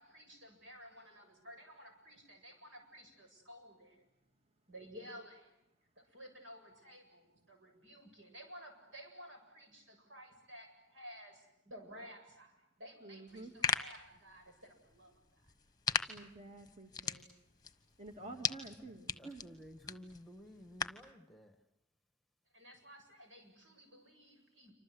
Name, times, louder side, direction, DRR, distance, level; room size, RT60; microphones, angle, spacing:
voice 1, 0.0-4.0 4.7-5.5 6.0-15.5 22.5-24.7, equal, 80° right, 4 dB, 7.7 m, -54 dB
voice 2, 13.0-13.5 16.1-17.3 18.0-19.4, right 2 dB, 35° right, 4 dB, 2.6 m, -50 dB
sound 1, 13.3-21.1, left 5 dB, 20° left, 1.2 m, -40 dB
voice 3, 19.2-21.6, left 1 dB, ahead, 7 dB, 1.8 m, -54 dB
28.0 x 25.5 x 8.0 m, 0.86 s
head